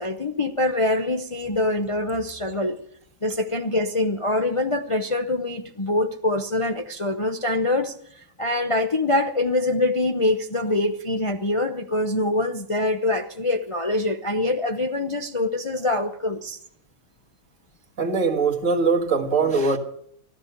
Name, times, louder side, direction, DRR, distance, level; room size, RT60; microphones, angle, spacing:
voice 1, 0.0-2.8 3.2-16.6, left 2 dB, 25° left, 0.7 m, -24 dB
voice 2, 18.0-19.8, right 4 dB, 50° right, 2.0 m, -21 dB
16.0 x 12.5 x 6.7 m
omnidirectional pair, 1.8 m